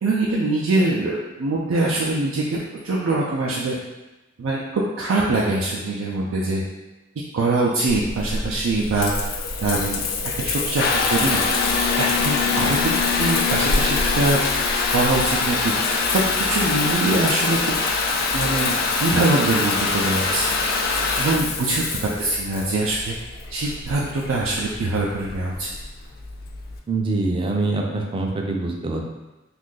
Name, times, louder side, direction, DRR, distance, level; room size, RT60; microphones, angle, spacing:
voice 1, 0.0-3.7 4.4-6.6 7.3-9.3 9.6-10.0 10.4-10.8 11.1-11.4 12.0-12.8 13.2-14.4 14.7-15.7 16.1-16.2 16.5-17.7 18.3-20.6 21.2-23.2 23.5-25.7, right 2 dB, 90° right, -5 dB, 0.4 m, -23 dB
Water tap faucet / Bathtub (filling or washing) / Trickle dribble, 7.9-26.8, left 4 dB, 50° left, 0.4 m, -24 dB
voice 2, 26.9-29.1, right 2 dB, 25° right, 1 dB, 0.4 m, -24 dB
2.6 x 2.4 x 3.7 m, 1.1 s
head